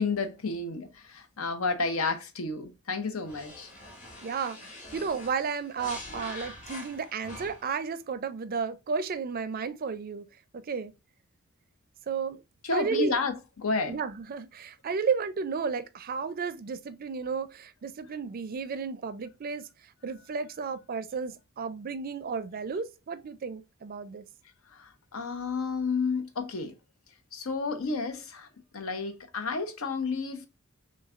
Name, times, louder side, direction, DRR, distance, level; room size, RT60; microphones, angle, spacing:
voice 1, 0.0-3.7 12.6-14.0 24.7-26.7 27.3-28.5 28.7-30.5, left 4 dB, 80° left, 0.7 m, -31 dB
sound 1, 3.3-7.8, left 1 dB, 40° left, 1.6 m, -44 dB
voice 2, 4.2-10.2 10.5-10.9 12.1-12.4 12.7-13.2 13.9-19.7 20.0-24.2, right 5 dB, 45° right, 0.4 m, -33 dB
6.2 x 2.3 x 2.4 m
head